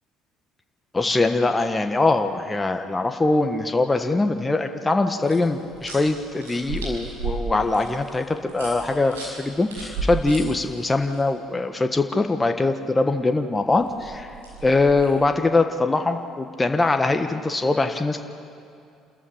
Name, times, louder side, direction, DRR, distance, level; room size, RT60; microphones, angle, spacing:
voice 1, 0.9-14.3 14.6-18.2, left 2 dB, 20° left, 6 dB, 1.4 m, -22 dB
sound 1, 5.2-11.2 13.7-15.2, right 4 dB, 85° right, 5.6 m, -34 dB
28.5 x 14.0 x 8.7 m, 2.4 s
hypercardioid pair, 55°, 0 cm